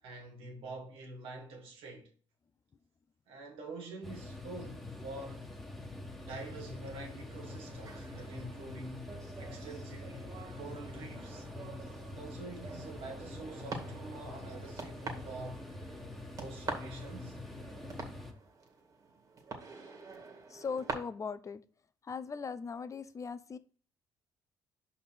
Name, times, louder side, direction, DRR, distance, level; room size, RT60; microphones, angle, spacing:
voice 1, 0.0-2.1 3.3-5.5 6.2-10.1 10.5-11.5 12.1-15.7 16.4-17.4, right 3 dB, 80° right, 2.2 m, -46 dB
sound 1, 4.0-18.3, left 2 dB, ahead, 1.6 m, -45 dB
sound 2, 7.3-20.9, right 4 dB, 40° right, 2.2 m, -47 dB
voice 2, 20.5-21.6 22.0-23.6, left 5 dB, 35° left, 0.6 m, -39 dB
5.6 x 4.3 x 6.0 m
supercardioid pair, 80°, 9 cm